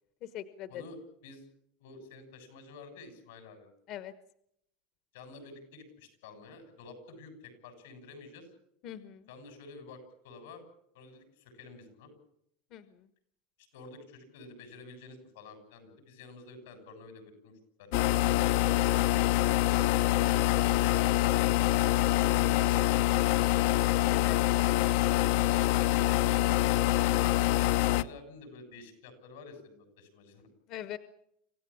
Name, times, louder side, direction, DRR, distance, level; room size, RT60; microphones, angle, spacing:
voice 1, 0.2-0.8 3.9-4.1 8.8-9.3 12.7-13.1 24.1-24.6 30.7-31.0, left 11 dB, 45° left, 12 dB, 1.1 m, -42 dB
voice 2, 1.8-3.7 5.1-8.5 9.3-10.6 10.9-12.1 13.6-17.5 17.8-18.8 25.9-30.5, left 3 dB, 90° left, 8 dB, 7.3 m, -50 dB
sound 1, 17.9-28.0, left 16 dB, 65° left, 0.9 m, -25 dB
26.5 x 15.5 x 8.7 m, 0.75 s
supercardioid pair, 155°, 0 cm